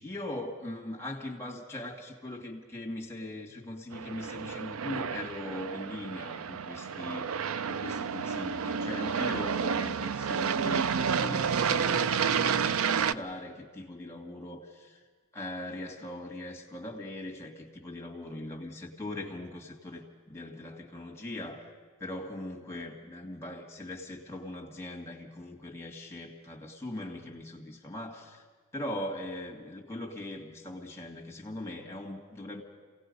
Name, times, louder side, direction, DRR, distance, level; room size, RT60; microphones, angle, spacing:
voice 1, 0.0-15.0 15.3-21.7 22.0-28.4 28.7-32.6, left 1 dB, 10° left, 0 dB, 2.1 m, -40 dB
Aircraft, 3.9-13.1, right 6 dB, 80° right, 0.5 m, -30 dB
27.5 x 17.5 x 5.4 m, 1.5 s
head